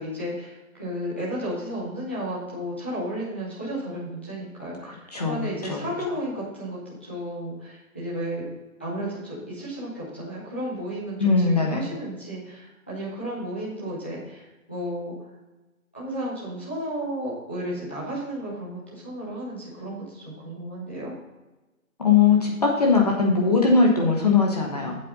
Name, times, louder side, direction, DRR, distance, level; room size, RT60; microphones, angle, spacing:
voice 1, 0.0-8.4 8.8-14.4 14.7-15.1 15.9-21.1, equal, 10° left, -9 dB, 0.8 m, -33 dB
voice 2, 4.8-5.9 11.2-11.9 22.0-25.0, left 4 dB, 30° left, 0 dB, 1.1 m, -20 dB
9.4 x 7.6 x 4.0 m, 1.1 s
hypercardioid pair, 170°, 42 cm